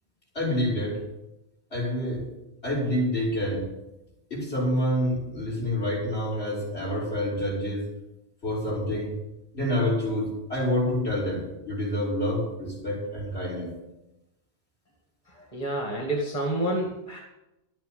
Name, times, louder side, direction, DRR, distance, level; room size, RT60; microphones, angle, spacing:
voice 1, 0.3-1.0 1.7-2.2 2.6-3.7 4.3-7.9 8.4-9.1 9.5-13.7, left 1 dB, 70° left, -3 dB, 6.6 m, -27 dB
voice 2, 15.3-17.2, right 1 dB, 35° left, 0 dB, 2.4 m, -29 dB
12.5 x 9.1 x 8.8 m, 0.93 s
omnidirectional pair, 1.2 m